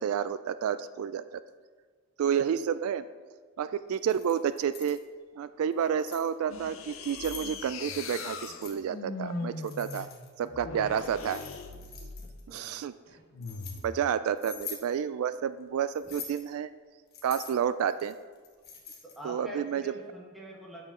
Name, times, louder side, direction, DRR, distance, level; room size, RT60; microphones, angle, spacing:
voice 1, 0.0-1.4 2.2-3.0 3.6-5.0 5.4-10.1 10.4-11.4 12.5-12.9 13.8-16.7 17.2-18.1 19.2-19.8, right 8 dB, 80° right, 14 dB, 0.3 m, -30 dB
Keys jangling, 3.9-5.0 5.7-6.3 6.9-7.5 8.1-8.8 9.6-10.5 10.9-12.4 13.1-13.8 14.4-14.9 15.9-16.5 17.1-19.2, left 6 dB, 45° left, 1.1 m, -45 dB
sound 1, 6.5-12.4 13.3-14.0, left 4 dB, 70° left, 0.6 m, -40 dB
voice 2, 12.2-12.8 16.0-16.2 19.0-20.8, right 1 dB, ahead, -4 dB, 1.5 m, -45 dB
9.0 x 4.9 x 5.6 m, 1.5 s
head